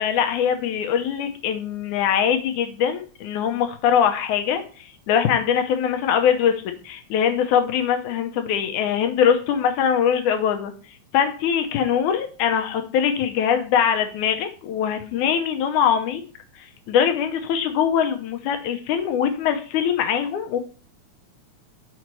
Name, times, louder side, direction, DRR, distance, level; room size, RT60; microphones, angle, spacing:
voice 1, 0.0-10.7 11.1-16.2 16.9-20.6, left 8 dB, 85° left, 6 dB, 2.4 m, -22 dB
6.3 x 4.8 x 4.4 m, 0.39 s
omnidirectional pair, 3.5 m